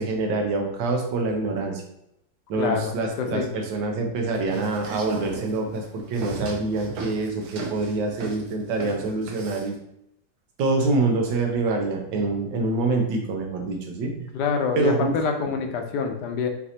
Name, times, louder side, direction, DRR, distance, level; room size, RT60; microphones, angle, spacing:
voice 1, 0.0-1.8 2.5-9.7 10.6-14.3 14.7-15.2, right 3 dB, 85° right, 3 dB, 1.5 m, -26 dB
voice 2, 2.6-2.9 3.2-3.5 14.3-16.5, left 5 dB, 75° left, 4 dB, 1.1 m, -26 dB
sound 1, 4.3-9.8, right 3 dB, 65° right, 1.1 m, -36 dB
6.1 x 2.6 x 2.8 m, 0.80 s
omnidirectional pair, 2.0 m